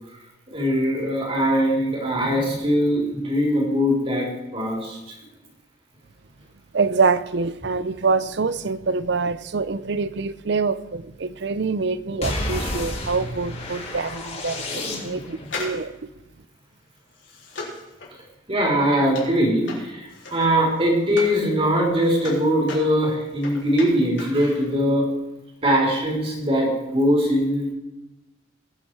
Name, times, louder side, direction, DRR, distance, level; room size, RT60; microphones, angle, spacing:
voice 1, 0.5-4.3 4.5-5.0 18.5-25.1 25.6-27.7, equal, 30° right, -1 dB, 3.7 m, -21 dB
voice 2, 6.7-15.9, right 4 dB, 60° right, 16 dB, 0.6 m, -25 dB
sound 1, 12.2-15.5, left 1 dB, 35° left, 2.5 m, -30 dB
sound 2, 15.4-21.4 21.8-24.4 24.7-24.8, left 3 dB, 75° left, 3.9 m, -38 dB
21.0 x 7.5 x 4.7 m, 0.94 s
head